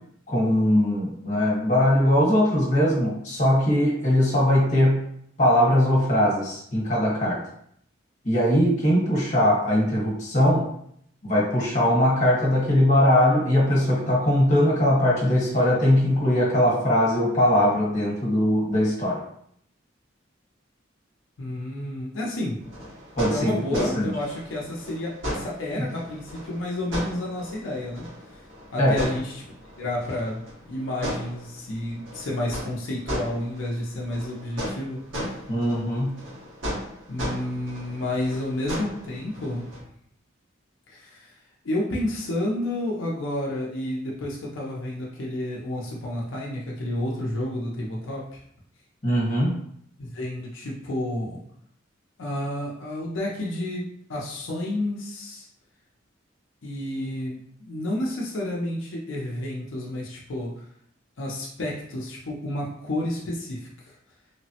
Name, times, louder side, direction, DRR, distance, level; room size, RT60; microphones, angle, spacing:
voice 1, 0.3-5.0 5.4-7.4 8.2-10.7 11.2-19.2 23.2-24.1 25.8-25.9 28.8-29.0 35.5-36.2 49.0-49.5, left 1 dB, 40° left, -5 dB, 1.1 m, -21 dB
voice 2, 21.4-22.6 23.3-28.1 28.7-29.4 29.8-35.0 37.1-39.7 40.9-41.3 41.6-48.4 50.0-51.4 52.2-55.5 56.6-60.6 61.2-63.9, left 1 dB, 85° left, -4 dB, 0.6 m, -30 dB
sound 1, 22.6-39.8, equal, 85° right, 1.4 m, -36 dB
3.2 x 2.0 x 2.8 m, 0.68 s
head